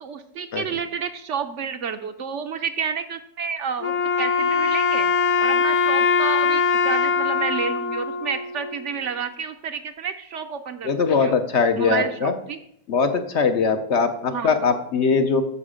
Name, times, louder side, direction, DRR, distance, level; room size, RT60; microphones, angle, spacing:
voice 1, 0.0-5.1 5.4-10.9 11.2-11.4 11.8-12.6 14.3-14.7, right 6 dB, 65° right, 8 dB, 0.8 m, -30 dB
Wind instrument woodwind instrument, 3.8-9.0, left 5 dB, 80° left, 1.4 m, -22 dB
voice 2, 10.8-12.3 12.9-15.4, left 5 dB, 60° left, 7 dB, 0.9 m, -21 dB
12.5 x 4.8 x 5.0 m, 0.72 s
omnidirectional pair, 1.5 m